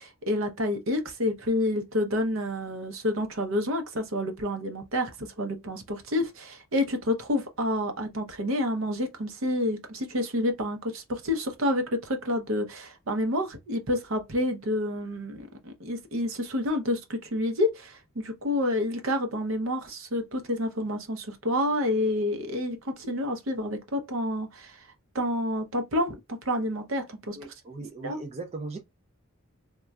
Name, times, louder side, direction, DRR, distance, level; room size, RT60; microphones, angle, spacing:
voice 1, 0.0-24.9 25.1-27.4 28.0-28.2, left 1 dB, 65° right, 0.7 m, -29 dB
voice 2, 27.3-28.8, right 2 dB, 30° right, 0.3 m, -38 dB
4.0 x 2.3 x 2.3 m
head